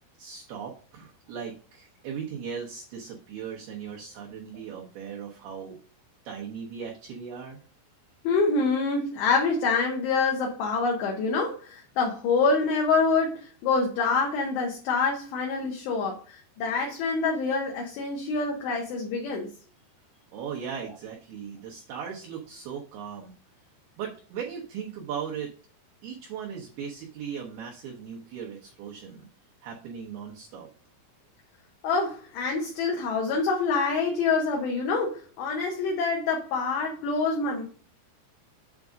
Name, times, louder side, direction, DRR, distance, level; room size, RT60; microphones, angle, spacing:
voice 1, 0.2-5.8 6.2-7.6 20.3-23.3 24.0-25.5 26.0-29.3 29.6-30.7, right 7 dB, 85° right, -1 dB, 2.2 m, -38 dB
voice 2, 8.2-19.5 31.8-37.6, left 4 dB, 70° left, 0 dB, 2.8 m, -26 dB
8.2 x 3.5 x 5.0 m, 0.40 s
omnidirectional pair, 5.9 m